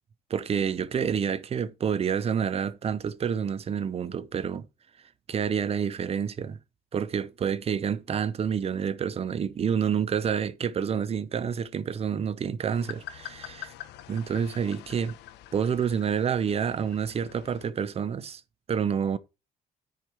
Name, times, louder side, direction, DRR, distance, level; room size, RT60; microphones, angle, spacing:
voice 1, 0.3-4.7 5.3-6.6 6.9-13.7 14.1-15.2 15.5-18.4 18.7-19.2, right 7 dB, 35° right, 0.8 m, -28 dB
sound 1, 12.7-17.7, left 13 dB, 85° left, 0.9 m, -45 dB
9.5 x 5.0 x 4.6 m
cardioid pair, 110°, 17 cm